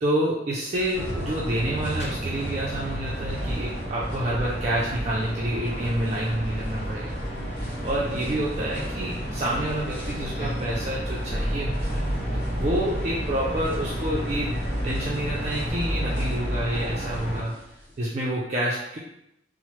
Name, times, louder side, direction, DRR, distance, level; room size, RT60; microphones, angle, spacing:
voice 1, 0.0-7.2 7.8-12.0 12.5-14.6 14.8-17.5 18.0-19.0, right 1 dB, 40° right, -5 dB, 0.4 m, -28 dB
sound 1, 0.7-18.0, equal, 10° left, 1.5 m, -46 dB
sound 2, 0.9-17.4, equal, 40° left, 1.1 m, -30 dB
2.9 x 2.0 x 3.0 m, 0.84 s
head